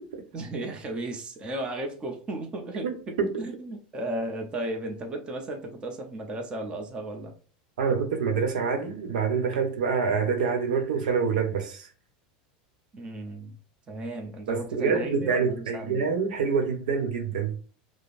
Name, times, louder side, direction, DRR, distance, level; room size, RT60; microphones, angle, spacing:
voice 1, 0.3-7.3 12.9-13.5 13.9-16.0, right 1 dB, 20° right, 0.7 m, -35 dB
voice 2, 2.8-3.4 7.8-11.9 14.5-17.6, right 5 dB, 85° right, 0.8 m, -26 dB
5.1 x 2.0 x 2.5 m
supercardioid pair, 125°, 4 cm